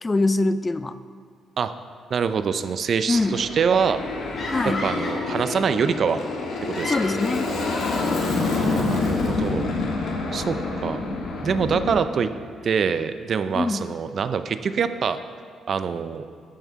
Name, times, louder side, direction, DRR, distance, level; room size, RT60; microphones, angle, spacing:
voice 1, 0.0-1.0 3.1-3.4 4.5-4.8 6.8-7.5 13.5-13.9, left 2 dB, 25° left, 13 dB, 0.4 m, -23 dB
voice 2, 2.1-4.0 4.7-6.2 6.6-7.0 8.4-9.7 10.3-11.0 11.4-12.3 12.6-15.2 15.7-16.3, right 6 dB, 55° right, 11 dB, 0.4 m, -25 dB
Aircraft, 3.1-11.9, left 3 dB, 70° left, 1.5 m, -27 dB
sound 1, 4.4-5.3 6.5-8.9, left 2 dB, 45° left, 1.8 m, -33 dB
12.0 x 5.6 x 4.6 m, 2.3 s
cardioid pair, 90°, 0 cm